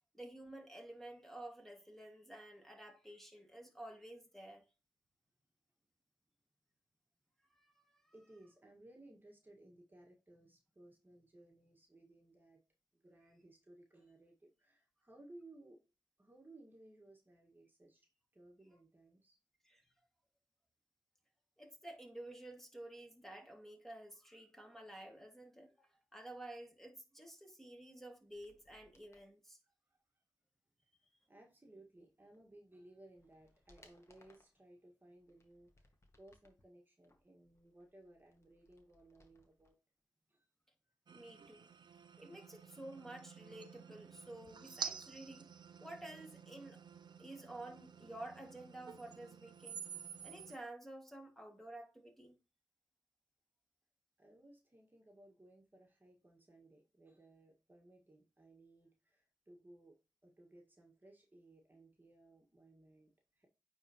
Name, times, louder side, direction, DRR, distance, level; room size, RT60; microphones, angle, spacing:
voice 1, 0.1-4.6 7.5-8.1 19.6-19.8 21.6-29.6 41.1-41.7 42.2-45.5 45.8-46.8 47.2-49.8 50.2-52.4, right 1 dB, 5° left, 2.0 m, -51 dB
voice 2, 8.1-12.6 12.9-15.8 16.2-18.1 18.3-19.4 29.9-30.0 31.3-39.8 40.3-40.5 54.2-63.5, right 1 dB, 25° right, 1.7 m, -61 dB
sound 1, 28.2-29.3 32.3-32.4 32.9-34.6 35.2-36.6 37.0-39.7 40.0-40.1, left 2 dB, 35° left, 1.7 m, -70 dB
sound 2, 41.1-50.6, right 7 dB, 60° right, 0.6 m, -50 dB
8.8 x 3.8 x 3.0 m
cardioid pair, 50°, 8 cm